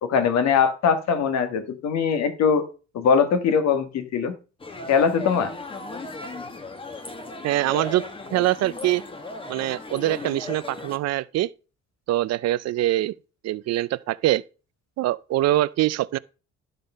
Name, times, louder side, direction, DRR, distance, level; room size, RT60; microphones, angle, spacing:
voice 1, 0.0-2.7 2.9-4.3 4.9-5.5, left 6 dB, 65° left, 1.6 m, -21 dB
sound 1, 4.6-11.0, left 2 dB, 20° left, 1.0 m, -36 dB
voice 2, 7.4-8.0 8.3-9.0 9.5-11.5 12.1-13.1 13.4-14.4 15.0-16.2, right 15 dB, 60° right, 0.5 m, -23 dB
12.5 x 5.2 x 5.4 m
cardioid pair, 165°, 29 cm